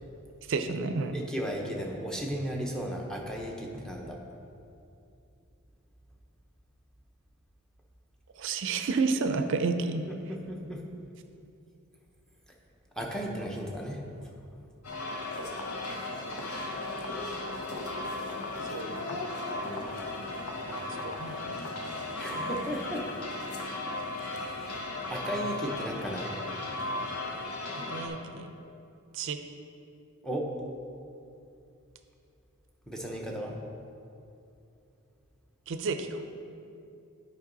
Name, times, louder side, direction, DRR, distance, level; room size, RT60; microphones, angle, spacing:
voice 1, 0.4-1.2 8.3-10.0 18.6-19.2 20.6-21.7 27.8-28.6 29.1-29.4 35.7-36.2, right 4 dB, 60° right, 8 dB, 0.5 m, -31 dB
voice 2, 1.1-4.2 10.3-10.8 12.9-14.3 15.4-15.6 16.0-16.5 17.0-18.7 19.6-20.0 22.2-23.1 24.2-26.4 30.2-30.5 32.9-33.6, equal, 5° left, -1 dB, 0.8 m, -36 dB
sound 1, 14.8-28.1, left 2 dB, 85° left, 0.9 m, -36 dB
9.9 x 5.3 x 3.9 m, 2.6 s
head